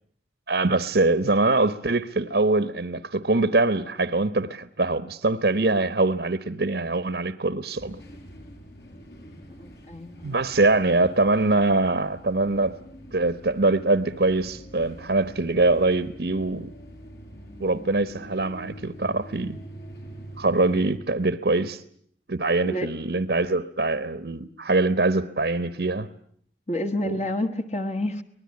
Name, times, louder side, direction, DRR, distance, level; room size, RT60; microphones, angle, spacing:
voice 1, 0.5-8.0 10.2-12.8 13.1-16.7 17.6-19.6 20.4-21.8 22.3-26.1 27.0-27.1, right 2 dB, 70° right, 1.1 m, -23 dB
sound 1, 7.8-21.0, equal, 65° left, 7.2 m, -44 dB
voice 2, 9.6-10.4 22.6-22.9 26.7-28.2, left 1 dB, 40° left, 1.5 m, -29 dB
24.5 x 19.5 x 9.7 m
head